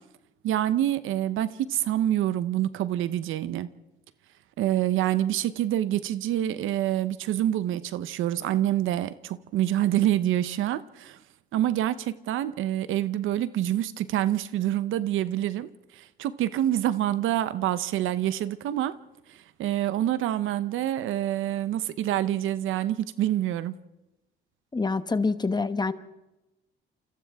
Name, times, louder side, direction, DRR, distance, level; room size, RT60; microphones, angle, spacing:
voice 1, 0.4-3.7 4.6-11.2 11.5-19.0 19.6-23.8, right 12 dB, 85° right, 0.8 m, -26 dB
voice 2, 24.7-25.9, left 3 dB, 20° left, 1.1 m, -26 dB
28.5 x 26.5 x 3.6 m
cardioid pair, 90°, 20 cm